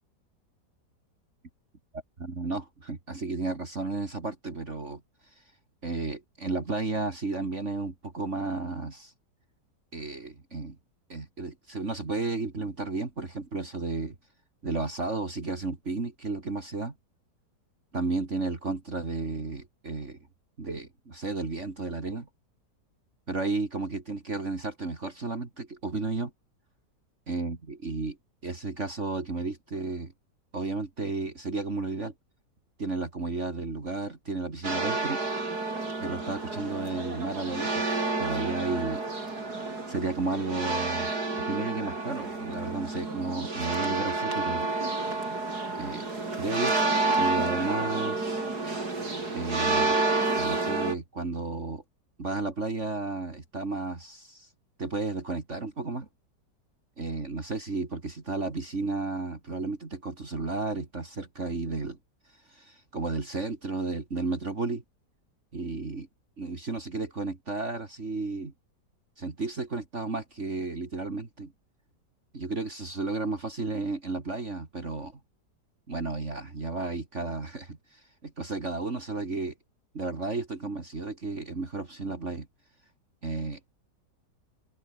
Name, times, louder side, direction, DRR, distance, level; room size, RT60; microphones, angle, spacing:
voice 1, 1.9-5.0 5.8-9.1 9.9-10.8 11.1-14.1 14.6-16.9 17.9-20.2 20.6-22.3 23.3-26.3 27.3-28.2 28.4-30.1 30.5-32.1 32.8-35.2 36.0-37.9 38.2-39.0 39.9-41.1 41.4-44.7 45.7-46.1 46.4-46.8 47.2-48.4 49.3-50.0 50.4-51.8 52.2-54.5 54.8-56.1 57.0-62.0 62.5-64.8 65.5-66.1 66.4-68.5 69.2-71.5 72.3-75.2 75.9-79.5 79.9-82.5 83.2-83.6, right 3 dB, 40° right, 3.0 m, -33 dB
sound 1, 34.6-50.9, right 3 dB, 60° right, 5.2 m, -30 dB
omnidirectional pair, 1.9 m